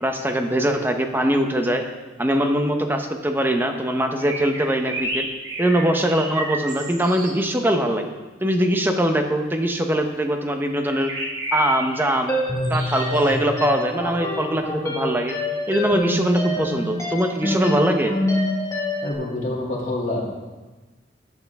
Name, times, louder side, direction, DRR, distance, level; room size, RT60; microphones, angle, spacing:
voice 1, 0.0-1.8 2.2-5.3 5.6-8.1 8.4-11.1 11.5-12.4 12.7-15.4 15.7-18.1, right 1 dB, 10° right, 5 dB, 0.8 m, -22 dB
sound 1, 4.2-7.3 10.8-12.1 12.6-13.3, right 1 dB, 80° right, 2.5 m, -31 dB
sound 2, 12.3-19.1, left 1 dB, 20° left, 1.7 m, -26 dB
voice 2, 19.0-20.2, left 1 dB, 40° left, -4 dB, 2.6 m, -26 dB
12.5 x 8.1 x 3.5 m, 1.2 s
head